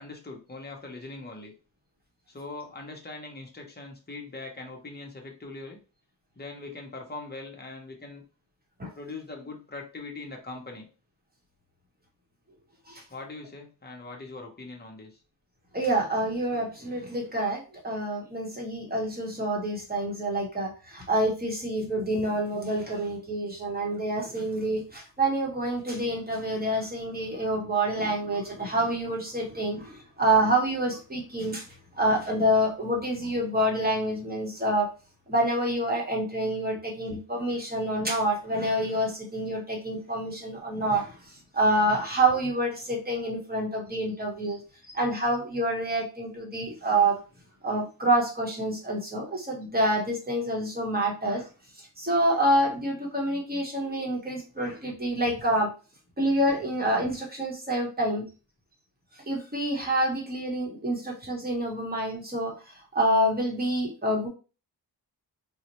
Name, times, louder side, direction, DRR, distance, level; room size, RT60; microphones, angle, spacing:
voice 1, 0.0-1.5 2.3-5.8 6.4-8.2 9.0-10.9 13.1-15.2, left 3 dB, 25° left, 1 dB, 0.8 m, -41 dB
voice 2, 15.7-31.6 32.0-34.9 35.3-41.1 41.5-44.6 44.9-47.2 47.6-51.4 52.0-55.7 56.2-58.2 59.3-62.5 62.9-64.3, right 1 dB, 25° right, -1 dB, 1.0 m, -27 dB
4.0 x 2.1 x 2.9 m, 0.34 s
wide cardioid pair, 160°, 39 cm